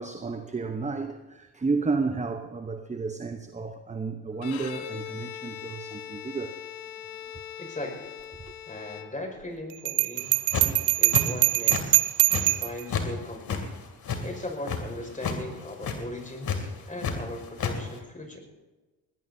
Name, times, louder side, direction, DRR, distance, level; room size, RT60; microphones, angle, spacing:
voice 1, 0.0-6.6 8.4-8.5, right 4 dB, 15° right, 0.9 m, -32 dB
Bowed string instrument, 4.3-9.6, left 10 dB, 75° left, 1.5 m, -41 dB
voice 2, 7.6-8.1 8.7-10.4 11.0-12.1 12.4-13.7 14.2-18.4, left 1 dB, 15° left, 5.6 m, -38 dB
Bell, 9.9-12.8, right 22 dB, 65° right, 0.7 m, -23 dB
sound 1, 10.2-10.8 11.1-11.8 12.1-13.1 13.3-14.8 15.1-15.4 15.7-16.0 16.4-17.1 17.4-17.7, left 6 dB, 45° left, 2.8 m, -30 dB
21.5 x 19.0 x 2.8 m
hypercardioid pair, 65°, 48 cm